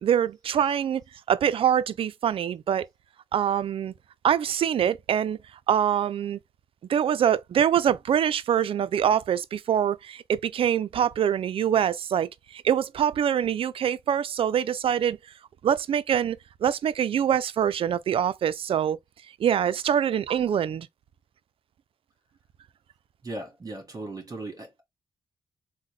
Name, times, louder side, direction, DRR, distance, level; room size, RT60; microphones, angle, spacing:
voice 1, 0.0-1.0 1.3-2.8 3.3-3.9 4.2-5.4 5.7-6.4 6.9-15.2 15.6-19.0 19.4-20.9, right 9 dB, 60° right, 0.4 m, -24 dB
voice 2, 23.2-24.8, right 2 dB, 35° right, 1.4 m, -37 dB
3.6 x 2.1 x 3.1 m
supercardioid pair, 50°, 10 cm